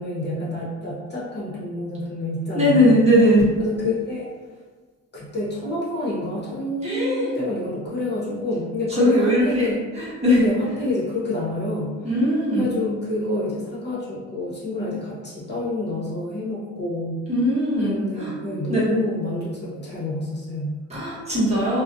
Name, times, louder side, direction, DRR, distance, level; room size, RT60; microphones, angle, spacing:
voice 1, 0.0-3.0 3.6-4.3 5.1-9.8 10.4-12.1 12.6-17.2 17.8-20.8, left 2 dB, 35° left, -7 dB, 0.8 m, -28 dB
voice 2, 2.5-3.4 6.8-7.3 8.9-9.7 10.0-10.4 12.0-12.7 17.3-18.3 18.7-18.9 20.9-21.8, equal, 20° right, -9 dB, 1.0 m, -19 dB
2.4 x 2.1 x 2.6 m, 1.4 s
cardioid pair, 90°, 30 cm